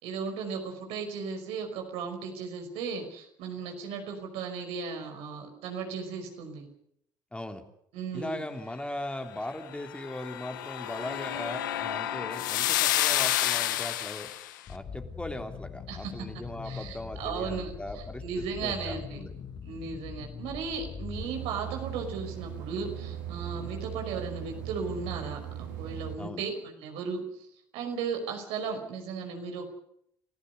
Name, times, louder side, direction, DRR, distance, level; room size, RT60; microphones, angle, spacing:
voice 1, 0.0-6.7 7.9-8.4 15.9-16.3 16.6-19.2 19.6-27.2 27.7-29.7, right 5 dB, 75° right, 4 dB, 5.4 m, -36 dB
voice 2, 7.3-7.6 8.1-14.3 14.7-18.2 18.6-19.3 26.2-26.4, left 1 dB, 10° left, 5 dB, 3.1 m, -39 dB
sound 1, 9.9-14.5, left 13 dB, 85° left, 1.3 m, -29 dB
sound 2, 14.7-21.2, left 6 dB, 50° left, 2.6 m, -42 dB
sound 3, 21.1-26.2, right 10 dB, 90° right, 3.1 m, -38 dB
30.0 x 15.0 x 6.8 m, 0.71 s
hypercardioid pair, 65°, 10 cm